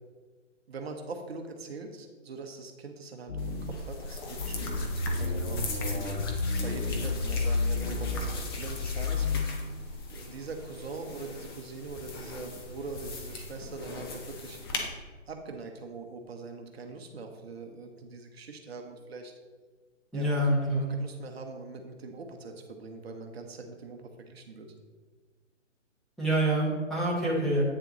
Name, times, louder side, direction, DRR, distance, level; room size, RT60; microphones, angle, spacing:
voice 1, 0.7-6.2 6.6-9.7 10.1-14.6 15.3-19.4 20.1-24.7, right 3 dB, 55° right, 4 dB, 1.0 m, -42 dB
sound 1, 3.3-3.9 4.4-9.4, left 3 dB, 90° left, 2.1 m, -31 dB
sound 2, 3.4-14.9, left 2 dB, 20° left, 0.6 m, -39 dB
voice 2, 20.1-20.9 26.2-27.6, right 1 dB, ahead, -9 dB, 1.2 m, -26 dB
8.8 x 6.8 x 3.0 m, 1.4 s
hypercardioid pair, 145°, 38 cm